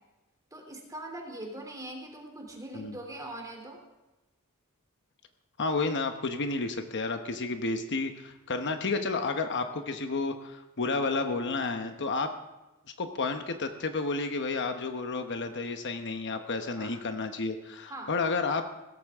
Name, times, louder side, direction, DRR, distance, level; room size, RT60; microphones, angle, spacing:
voice 1, 0.5-3.8 16.8-16.9 17.9-18.1, right 1 dB, 15° right, 2 dB, 2.9 m, -41 dB
voice 2, 5.6-12.3 13.0-18.7, left 3 dB, 55° left, 6 dB, 1.0 m, -31 dB
17.0 x 14.5 x 3.6 m, 1.0 s
head